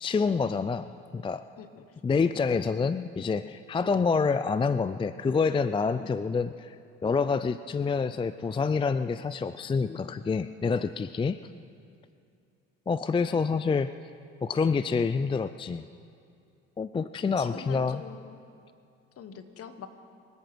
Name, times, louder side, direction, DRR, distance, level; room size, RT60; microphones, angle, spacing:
voice 1, 0.0-1.5 2.0-6.8 7.0-11.4 12.9-13.9 14.4-15.8 16.8-18.0, left 5 dB, 15° left, 14 dB, 0.4 m, -27 dB
voice 2, 17.4-18.4 19.2-19.9, left 7 dB, 50° left, 10 dB, 1.4 m, -43 dB
24.5 x 8.9 x 6.1 m, 2.5 s
hypercardioid pair, 60°, 29 cm